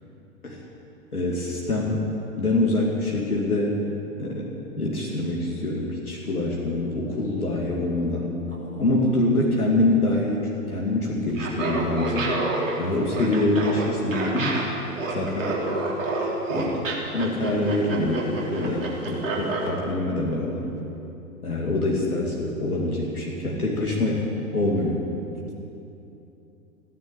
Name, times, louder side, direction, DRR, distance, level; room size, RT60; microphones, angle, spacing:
voice 1, 1.1-2.1 2.3-3.8 4.2-4.5 4.8-8.3 8.8-12.3 12.8-14.6 15.1-15.6 16.5-16.9 17.1-20.7 21.4-24.3 24.5-25.1, left 2 dB, 75° left, -3 dB, 2.6 m, -25 dB
voice 2, 8.5-9.1 12.7-12.8 18.7-18.9 25.3-25.5, right 3 dB, 85° right, -3 dB, 4.0 m, -43 dB
Laughter, 11.3-19.7, right 2 dB, 60° right, 3.5 m, -28 dB
15.5 x 11.0 x 8.4 m, 2.9 s
figure-of-eight pair, 110°, 44 cm